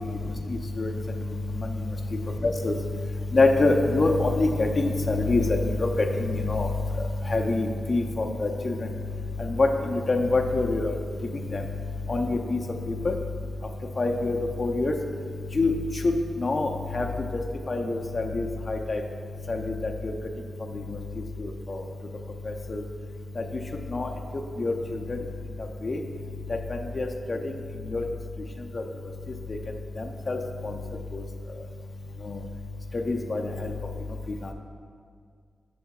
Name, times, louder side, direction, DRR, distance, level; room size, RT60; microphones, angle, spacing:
voice 1, 0.5-0.9 2.4-2.8 3.3-6.7 7.3-8.8 9.4-11.0 11.5-11.6 12.1-12.6 13.0-13.1 14.0-14.9 15.5-15.7 16.0-17.1 17.7-19.0 19.5-20.1 20.7-20.8 21.4-21.8 22.7-22.8 23.4-23.5 23.9-24.1 24.6-24.7 25.1-25.2 25.8-26.0 26.7-27.4 27.9-28.0 28.7-28.8 30.0-30.8 31.1-31.2 32.3-32.4 33.1-33.7, left 2 dB, 35° left, 3 dB, 0.5 m, -25 dB
12.0 x 5.6 x 2.3 m, 2.1 s
wide cardioid pair, 130°, 0 cm